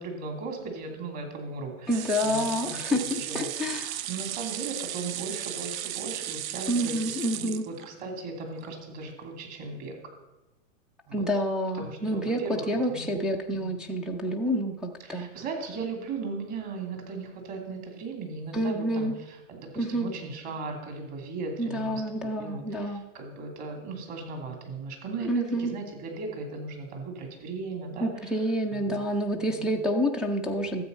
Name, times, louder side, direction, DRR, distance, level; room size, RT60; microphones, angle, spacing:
voice 1, 0.0-2.8 3.2-10.0 11.1-11.3 11.8-13.1 13.5-13.7 15.1-19.1 19.5-22.0 22.4-28.1 28.8-29.0 29.4-29.7, right 3 dB, 40° right, 3 dB, 2.9 m, -37 dB
voice 2, 1.9-3.9 6.7-7.6 11.1-15.3 18.5-19.2 19.8-20.1 21.6-23.1 25.2-25.7 28.0-30.8, equal, ahead, -2 dB, 0.3 m, -28 dB
sound 1, 1.9-8.2 8.6-8.7 9.0-9.1, right 12 dB, 80° right, 0.6 m, -35 dB
13.0 x 7.9 x 5.3 m, 1.0 s
hypercardioid pair, 120°, 41 cm